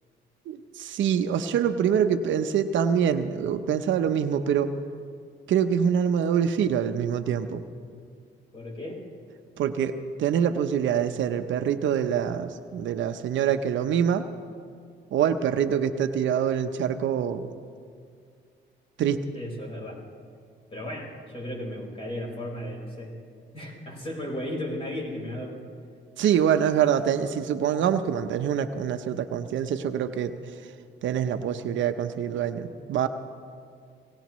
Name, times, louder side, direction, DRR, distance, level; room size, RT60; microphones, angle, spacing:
voice 1, 0.5-4.7 5.5-7.6 9.6-14.3 15.1-17.5 19.0-19.2 26.2-30.4 31.0-33.1, right 8 dB, 75° right, 9 dB, 0.7 m, -25 dB
voice 2, 8.5-9.0 19.3-20.0 20.7-23.1 23.5-25.7 26.2-26.4, left 1 dB, 30° left, -2 dB, 4.6 m, -35 dB
23.5 x 18.0 x 3.1 m, 2.2 s
cardioid pair, 90°, 20 cm